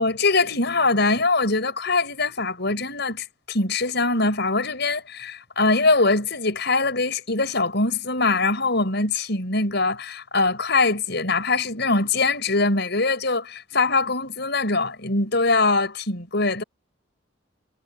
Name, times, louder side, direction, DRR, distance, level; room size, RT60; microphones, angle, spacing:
voice 1, 0.0-16.6, left 3 dB, 60° left, 7.0 m, -22 dB
head